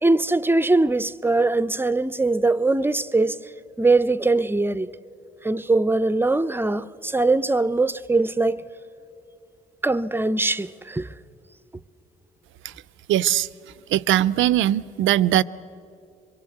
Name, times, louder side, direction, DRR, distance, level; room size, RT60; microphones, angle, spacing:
voice 1, 0.0-3.4 3.8-4.9 5.4-8.6 9.8-11.1, right 2 dB, 10° right, 0.5 m, -21 dB
voice 2, 13.1-13.5 13.9-15.4, right 12 dB, 80° right, 0.5 m, -20 dB
24.5 x 23.0 x 7.9 m
cardioid pair, 90°, 20 cm